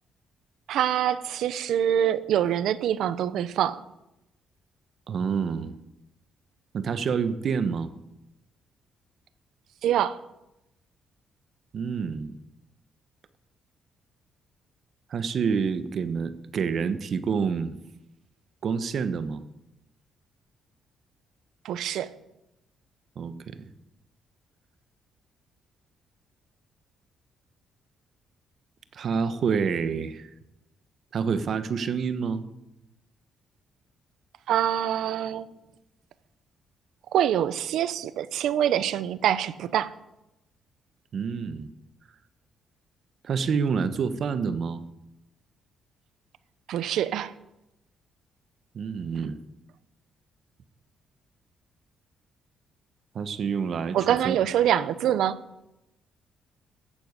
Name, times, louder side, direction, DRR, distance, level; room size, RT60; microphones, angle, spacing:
voice 1, 0.7-3.8 9.8-10.2 21.6-22.1 34.5-35.5 37.1-39.9 46.7-47.3 53.9-55.4, right 10 dB, 80° right, 16 dB, 0.8 m, -25 dB
voice 2, 5.1-5.7 6.7-7.9 11.7-12.3 15.1-17.8 18.6-19.4 23.2-23.7 28.9-30.3 31.1-32.4 41.1-41.7 43.2-44.8 48.7-49.4 53.1-54.4, right 6 dB, 55° right, 12 dB, 1.2 m, -28 dB
14.5 x 9.3 x 8.2 m, 0.91 s
cardioid pair, 90°, 0 cm